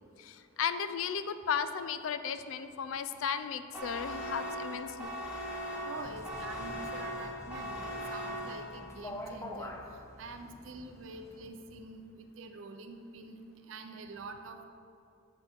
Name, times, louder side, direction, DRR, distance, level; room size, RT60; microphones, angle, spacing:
voice 1, 0.2-5.1, left 7 dB, 85° left, 11 dB, 0.4 m, -35 dB
sound 1, 3.7-9.0, equal, 5° right, 1.0 m, -39 dB
voice 2, 5.8-9.7 10.2-14.6, right 3 dB, 75° right, 6 dB, 0.5 m, -46 dB
sound 2, 5.9-11.5, left 1 dB, 15° left, 0.4 m, -47 dB
7.7 x 4.3 x 4.4 m, 2.5 s
head